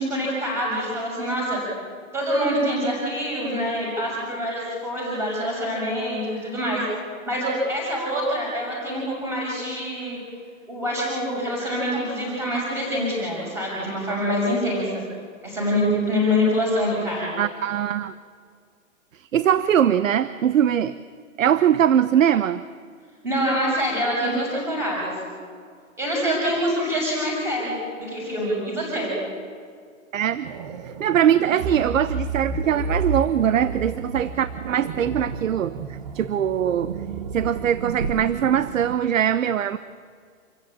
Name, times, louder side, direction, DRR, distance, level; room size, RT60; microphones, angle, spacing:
voice 1, 0.0-1.6 2.1-6.8 7.2-10.2 10.7-15.0 15.4-17.3 23.2-25.1 26.0-29.2, equal, 5° right, -4 dB, 6.5 m, -25 dB
voice 2, 17.4-18.1 19.1-21.0 21.4-22.6 30.1-30.5 30.9-36.9 37.3-39.8, right 9 dB, 70° right, 14 dB, 0.9 m, -21 dB
sound 1, 30.4-38.9, right 4 dB, 30° right, 1.2 m, -31 dB
28.0 x 14.5 x 8.8 m, 2.1 s
hypercardioid pair, 175°, 41 cm